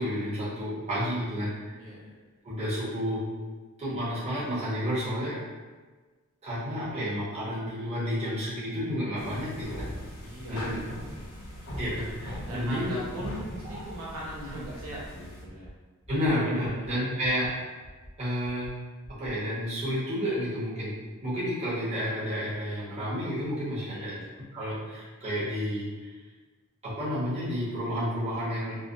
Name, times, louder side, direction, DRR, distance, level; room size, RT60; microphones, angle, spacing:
voice 1, 0.0-1.7 2.4-3.2 3.8-5.4 6.4-9.9 10.5-10.8 11.8-12.9 16.1-17.5 18.2-18.7 19.2-20.9 21.2-24.2 24.5-26.1 26.8-28.8, equal, 30° right, -10 dB, 0.9 m, -30 dB
voice 2, 1.8-2.1 10.2-11.3 12.4-15.7 16.4-17.2 23.8-24.3, equal, 70° right, -7 dB, 0.7 m, -41 dB
sound 1, 9.2-15.4, equal, 85° left, 0.9 m, -40 dB
sound 2, 13.0-13.3 13.6-13.9 14.2-14.5 14.8-15.1 15.4-15.7 16.0-16.3 16.6-16.9 17.2-17.5 17.8-18.1 18.4-18.7 19.0-19.3, equal, 15° right, 0.5 m, -47 dB
3.2 x 2.0 x 2.5 m, 1.4 s
head